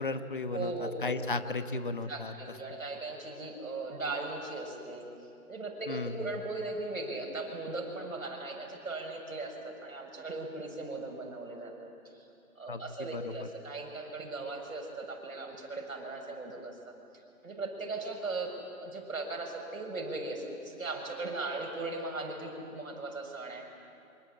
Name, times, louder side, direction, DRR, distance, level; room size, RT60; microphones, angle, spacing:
voice 1, 0.0-2.6 5.9-6.3 12.7-13.5, left 3 dB, 35° left, 10 dB, 1.2 m, -35 dB
voice 2, 0.5-0.9 1.5-1.6 2.1-5.0 5.5-11.9 12.6-16.9 17.4-23.7, right 2 dB, 65° right, 2 dB, 7.2 m, -38 dB
26.0 x 25.0 x 8.8 m, 2.6 s
hypercardioid pair, 170°, 44 cm